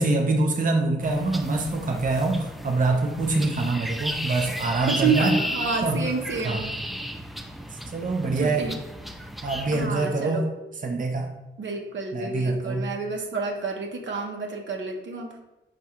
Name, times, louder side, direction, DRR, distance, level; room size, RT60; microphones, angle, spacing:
voice 1, 0.0-5.4 5.8-6.0 6.4-6.7 7.9-8.7 9.4-10.5 10.8-11.3 12.1-12.9, right 2 dB, 45° right, 2 dB, 0.6 m, -25 dB
sound 1, 1.0-9.9, equal, ahead, 0.5 m, -34 dB
voice 2, 4.9-6.7 8.4-8.8 9.7-10.4 11.6-15.3, right 4 dB, 75° right, 1 dB, 0.8 m, -29 dB
4.6 x 2.5 x 4.2 m, 0.96 s
cardioid pair, 50°, 19 cm